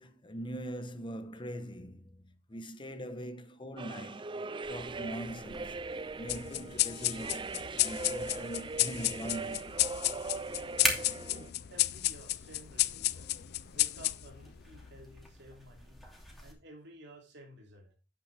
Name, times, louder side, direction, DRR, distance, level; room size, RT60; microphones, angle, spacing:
voice 1, 0.0-4.4 4.7-5.8 6.2-9.7 13.3-13.5, equal, 25° left, 1.0 m, -42 dB
sound 1, 3.8-11.5, right 3 dB, 25° right, 0.4 m, -40 dB
sound 2, 4.6-16.5, left 1 dB, ahead, 2.7 m, -43 dB
sound 3, 6.3-15.2, left 16 dB, 55° left, 0.5 m, -32 dB
voice 2, 11.2-13.3 13.7-16.0 16.4-18.0, right 1 dB, 65° right, 2.8 m, -53 dB
10.5 x 8.7 x 3.4 m
head